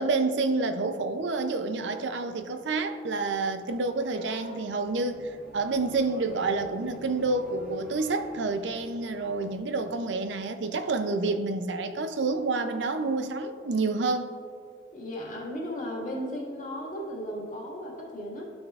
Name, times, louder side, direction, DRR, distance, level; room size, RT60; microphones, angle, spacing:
voice 1, 0.0-14.4, right 3 dB, 80° right, 8 dB, 0.5 m, -28 dB
Livestock farm animals working animals, 3.5-6.9 7.2-8.5 12.3-13.4, equal, 45° right, 0.9 m, -53 dB
sound 1, 3.6-11.4, right 1 dB, 5° right, 1.5 m, -50 dB
voice 2, 14.9-18.4, equal, 45° left, -3 dB, 1.8 m, -35 dB
12.5 x 6.1 x 2.4 m, 2.3 s
head